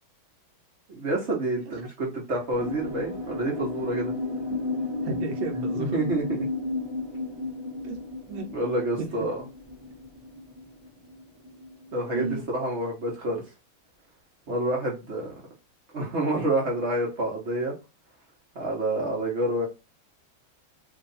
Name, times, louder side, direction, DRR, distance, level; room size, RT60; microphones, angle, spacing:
voice 1, 0.9-4.1 5.7-6.5 8.5-9.4 11.9-13.4 14.5-15.3 15.9-17.7 18.5-19.7, right 1 dB, 50° right, -1 dB, 0.9 m, -28 dB
sound 1, 2.5-11.9, left 2 dB, 15° right, 0.9 m, -33 dB
voice 2, 5.0-6.0 7.8-8.0 8.3-8.5 9.0-9.1 12.1-12.4, right 4 dB, 75° right, 3 dB, 1.4 m, -32 dB
3.1 x 2.8 x 3.9 m, 0.27 s
omnidirectional pair, 2.2 m